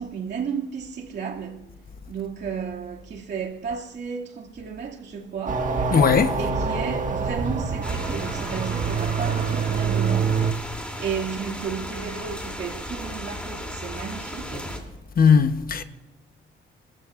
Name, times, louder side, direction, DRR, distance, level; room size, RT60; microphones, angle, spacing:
voice 1, 0.0-1.7 2.1-5.7 6.4-10.4 11.0-14.8, right 6 dB, 60° right, 2.4 m, -33 dB
sound 1, 5.5-10.5, right 5 dB, 40° right, 1.6 m, -25 dB
voice 2, 5.9-6.4 15.2-15.8, left 6 dB, 45° left, 1.0 m, -18 dB
sound 2, 7.8-14.8, equal, 5° left, 3.0 m, -35 dB
28.5 x 14.0 x 2.5 m
cardioid pair, 90°, 20 cm